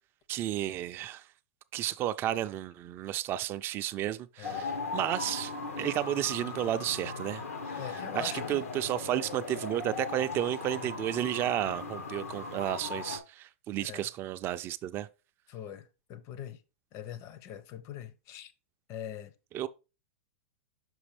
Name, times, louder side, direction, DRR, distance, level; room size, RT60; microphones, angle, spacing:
voice 1, 0.3-1.2 1.7-7.8 8.1-15.1 19.5-19.7, right 12 dB, 30° right, 0.4 m, -32 dB
sound 1, 4.4-13.2, left 4 dB, 90° left, 1.0 m, -38 dB
voice 2, 4.4-4.7 7.7-8.6 13.8-14.1 15.5-16.6 16.9-18.5 18.9-19.3, left 10 dB, 40° left, 0.6 m, -43 dB
6.1 x 5.0 x 3.2 m
hypercardioid pair, 120°, 7 cm